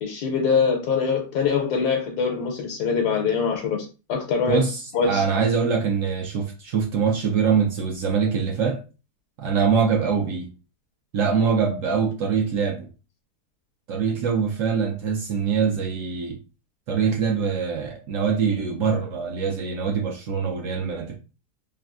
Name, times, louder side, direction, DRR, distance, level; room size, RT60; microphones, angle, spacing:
voice 1, 0.0-4.6 4.9-5.2, left 5 dB, 85° left, 1.2 m, -23 dB
voice 2, 4.5-8.8 9.4-10.5 11.1-12.9 13.9-16.4 16.9-21.1, right 6 dB, 70° right, 0.8 m, -23 dB
3.4 x 2.2 x 2.4 m
omnidirectional pair, 1.7 m